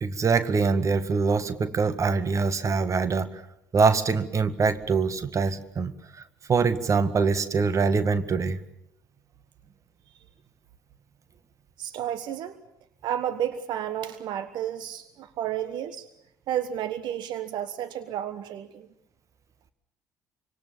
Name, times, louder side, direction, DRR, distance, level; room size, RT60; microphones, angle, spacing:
voice 1, 0.0-3.4 3.7-5.9 6.5-8.6, right 4 dB, 35° right, 12 dB, 1.8 m, -24 dB
voice 2, 11.8-12.6 13.0-16.1 16.5-18.9, right 10 dB, 55° right, 11 dB, 1.4 m, -31 dB
26.0 x 25.5 x 7.3 m, 0.78 s
figure-of-eight pair, 50°, 9 cm